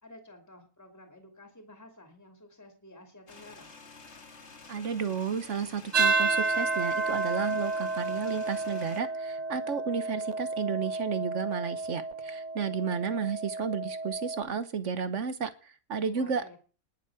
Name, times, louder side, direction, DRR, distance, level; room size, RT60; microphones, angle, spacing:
voice 1, 0.0-3.7 16.1-16.6, left 1 dB, 10° left, 4 dB, 2.6 m, -52 dB
sound 1, 3.3-9.0, left 4 dB, 55° left, 2.1 m, -50 dB
voice 2, 4.7-16.6, right 6 dB, 60° right, 13 dB, 1.4 m, -32 dB
sound 2, 5.9-14.4, right 3 dB, 35° right, 0.9 m, -31 dB
20.0 x 7.4 x 4.8 m, 0.37 s
omnidirectional pair, 1.4 m